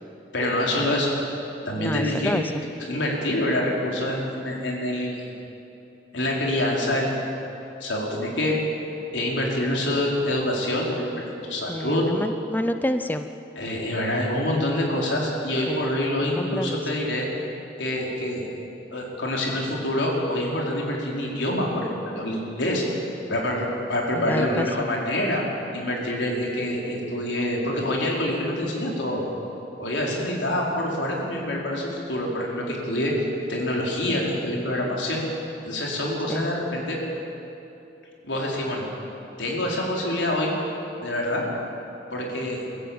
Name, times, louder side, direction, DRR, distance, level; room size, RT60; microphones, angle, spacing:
voice 1, 0.3-1.1 1.7-2.4 2.8-5.3 6.1-7.3 7.8-8.6 9.1-12.0 13.6-17.3 17.8-18.5 18.9-22.8 23.3-25.4 25.7-29.2 29.8-33.2 33.5-35.2 35.6-37.0 38.2-38.9 39.4-40.5 41.0-41.4 42.1-42.6, left 1 dB, 80° left, -2 dB, 4.4 m, -26 dB
voice 2, 1.8-2.4 11.7-13.3 15.7-15.9 16.4-16.8 24.2-24.7 36.3-36.5, left 1 dB, 10° left, 9 dB, 0.5 m, -28 dB
23.5 x 14.5 x 8.6 m, 2.9 s
head